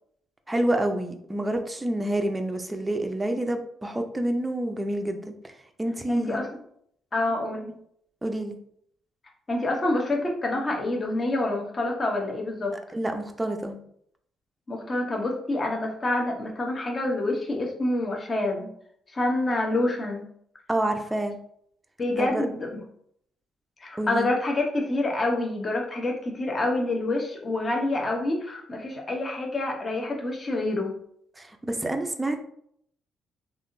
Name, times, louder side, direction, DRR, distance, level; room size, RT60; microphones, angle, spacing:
voice 1, 0.5-5.5 5.8-6.4 8.2-8.6 12.9-13.8 20.7-21.4 22.2-22.5 24.0-24.3 31.4-32.5, right 1 dB, 15° right, 5 dB, 0.4 m, -28 dB
voice 2, 6.1-6.5 7.1-7.7 9.5-12.8 14.7-18.7 19.1-20.2 22.0-22.8 23.8-31.0, left 2 dB, 30° left, 1 dB, 0.9 m, -27 dB
3.4 x 2.4 x 2.6 m, 0.68 s
cardioid pair, 90°, 0 cm